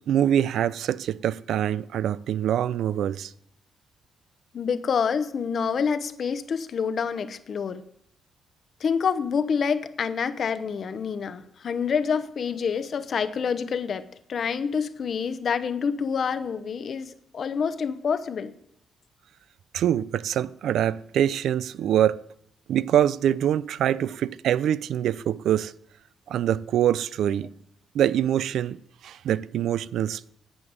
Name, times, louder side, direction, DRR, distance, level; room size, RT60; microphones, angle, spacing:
voice 1, 0.1-3.3 19.7-22.2 22.7-25.7 26.3-27.5 27.9-28.8 29.0-30.3, right 10 dB, 80° right, 0.4 m, -24 dB
voice 2, 4.5-7.8 8.8-18.5, left 6 dB, 50° left, 0.8 m, -27 dB
10.0 x 7.0 x 8.8 m
cardioid pair, 145°, 0 cm